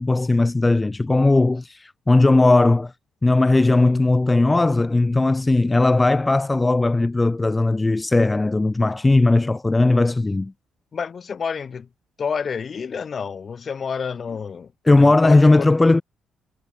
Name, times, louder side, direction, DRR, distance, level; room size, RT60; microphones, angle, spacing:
voice 1, 0.0-2.9 3.2-10.5 14.9-16.0, left 2 dB, 20° left, 0.4 m, -17 dB
voice 2, 10.9-11.9 12.2-15.7, left 6 dB, 45° left, 0.9 m, -29 dB
cardioid pair, 90°, 0 cm